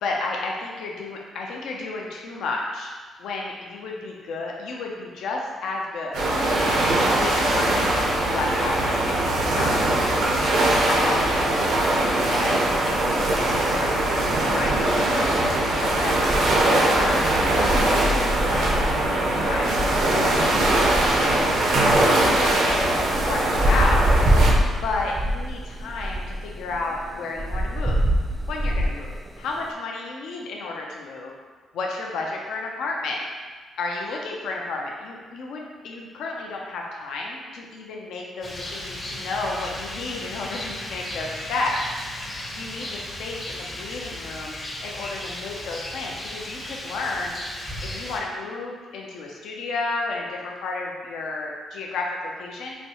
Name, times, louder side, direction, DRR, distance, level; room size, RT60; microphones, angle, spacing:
voice 1, 0.0-2.9 3.2-6.3 7.2-12.5 12.9-13.0 13.5-22.1 22.4-24.2 24.8-28.0 28.5-31.3 31.7-33.2 33.8-41.8 42.5-44.5 44.8-47.4 47.8-52.8, left 3 dB, 80° left, -1 dB, 0.4 m, -32 dB
sound 1, 6.1-24.5, right 1 dB, 85° right, 0.6 m, -21 dB
sound 2, 12.7-29.7, right 1 dB, 20° right, 0.3 m, -27 dB
Rain, 38.4-48.2, left 1 dB, 30° left, 0.6 m, -35 dB
4.0 x 2.3 x 2.8 m, 1.5 s
cardioid pair, 90°, 0 cm